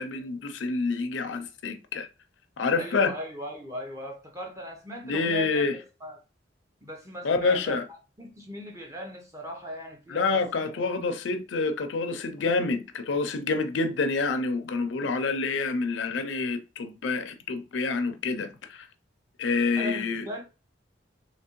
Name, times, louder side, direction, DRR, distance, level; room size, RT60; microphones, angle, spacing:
voice 1, 0.0-2.1 2.6-3.1 5.0-5.8 7.2-7.8 10.1-18.9 19.4-20.3, left 4 dB, 80° left, 0.5 m, -27 dB
voice 2, 2.7-6.2 6.8-7.8 8.2-10.9 19.8-20.4, equal, 15° right, 0.8 m, -38 dB
3.3 x 2.8 x 3.0 m
head